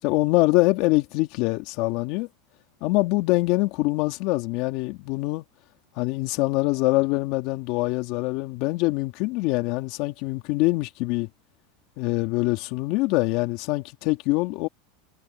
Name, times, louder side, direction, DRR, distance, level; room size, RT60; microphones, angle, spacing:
voice 1, 0.0-2.3 2.8-5.4 6.0-11.3 12.0-14.7, left 22 dB, 60° left, 2.6 m, -24 dB
supercardioid pair, 120°, 0 cm